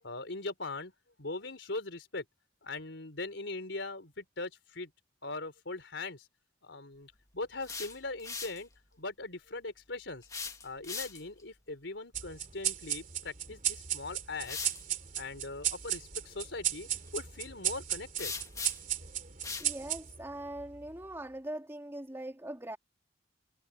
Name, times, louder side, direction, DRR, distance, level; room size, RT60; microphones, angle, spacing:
voice 1, 0.0-0.9 1.2-2.3 2.6-4.9 5.2-6.3 6.6-8.7 9.0-10.3 10.6-14.7 15.1-18.3, left 3 dB, 75° left, 3.9 m, -40 dB
sound 1, 7.4-8.6 10.2-11.4 13.5-13.6 14.4-14.8 18.2-19.0 19.4-19.7, left 5 dB, 20° left, 1.8 m, -40 dB
sound 2, 12.1-21.0, right 11 dB, 45° right, 2.9 m, -36 dB
voice 2, 19.6-22.8, right 1 dB, 15° right, 2.8 m, -41 dB
head